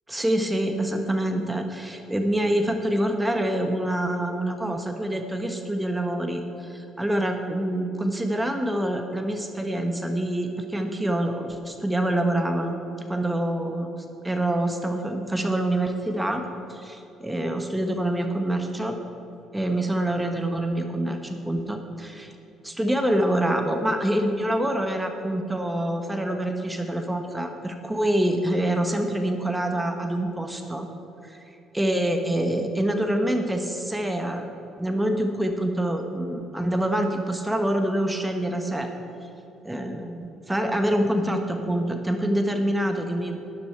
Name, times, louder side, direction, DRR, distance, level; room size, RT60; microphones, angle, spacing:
voice 1, 0.1-12.8 13.1-13.9 14.2-16.4 16.7-19.0 19.5-22.3 22.6-30.9 31.2-31.4 31.7-34.5 34.8-38.9 39.2-39.3 39.6-43.4, right 1 dB, 10° right, 5 dB, 1.3 m, -26 dB
12.0 x 10.5 x 4.6 m, 3.0 s
hypercardioid pair, 50°, 0 cm